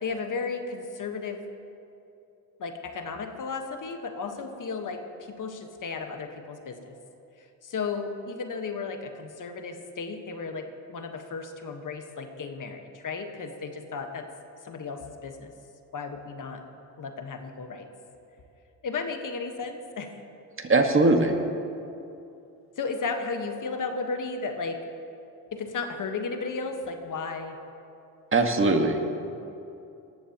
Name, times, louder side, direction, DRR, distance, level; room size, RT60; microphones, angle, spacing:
voice 1, 0.0-1.4 2.6-5.0 5.3-6.9 7.4-14.3 14.6-15.5 15.9-16.6 17.0-17.9 18.8-20.2 22.8-24.9 25.5-27.6, left 4 dB, 50° left, 5 dB, 1.4 m, -34 dB
voice 2, 20.6-21.4 28.3-29.0, right 2 dB, 30° right, 4 dB, 1.6 m, -21 dB
19.0 x 14.5 x 3.0 m, 2.7 s
supercardioid pair, 65°, 41 cm